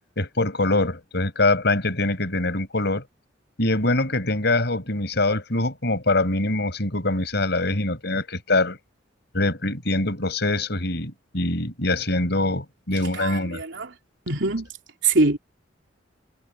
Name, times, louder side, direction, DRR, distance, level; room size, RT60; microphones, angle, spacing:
voice 1, 0.2-3.0 3.6-8.8 9.3-13.6, left 2 dB, 60° left, 6.4 m, -24 dB
voice 2, 13.2-13.9 14.3-14.7 15.0-15.4, right 3 dB, 75° right, 3.8 m, -23 dB
head